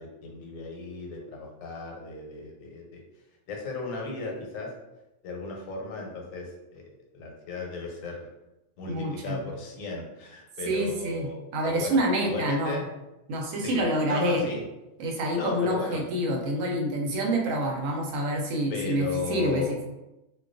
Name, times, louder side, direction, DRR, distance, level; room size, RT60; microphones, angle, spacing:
voice 1, 0.0-3.0 3.5-4.7 5.2-6.8 7.1-8.3 8.8-11.4 11.6-12.9 13.6-14.6 15.3-16.0 18.7-19.8, left 3 dB, 85° left, 0 dB, 1.0 m, -35 dB
voice 2, 8.9-9.4 10.7-11.3 11.5-12.8 13.3-14.5 15.0-19.8, right 1 dB, 90° right, 0 dB, 1.0 m, -27 dB
2.2 x 2.2 x 2.4 m, 0.97 s
omnidirectional pair, 1.3 m